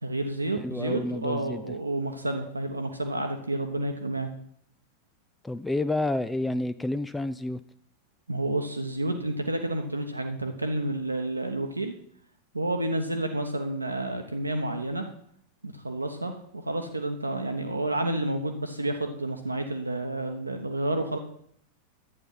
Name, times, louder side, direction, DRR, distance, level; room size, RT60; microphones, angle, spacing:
voice 1, 0.0-4.3 8.3-11.9 12.5-15.0 15.6-21.2, right 1 dB, 80° right, 4 dB, 1.0 m, -30 dB
voice 2, 0.6-1.6 5.4-7.6, left 2 dB, 10° left, 13 dB, 0.4 m, -29 dB
11.0 x 8.9 x 5.7 m, 0.66 s
figure-of-eight pair, 90°, 0 cm